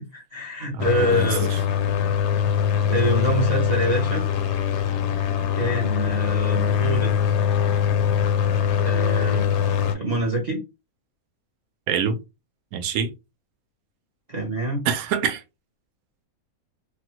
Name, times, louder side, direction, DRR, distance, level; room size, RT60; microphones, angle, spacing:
voice 1, 0.0-1.5 2.9-4.2 5.5-7.3 8.8-9.5 9.9-10.6 14.3-14.9, equal, 40° right, 0.6 m, -26 dB
voice 2, 0.7-1.6 11.9-12.2 12.7-13.1 14.8-15.4, right 7 dB, 80° right, 1.0 m, -26 dB
sound 1, 0.8-9.9, left 8 dB, 65° left, 0.7 m, -22 dB
3.3 x 2.2 x 2.9 m
omnidirectional pair, 1.5 m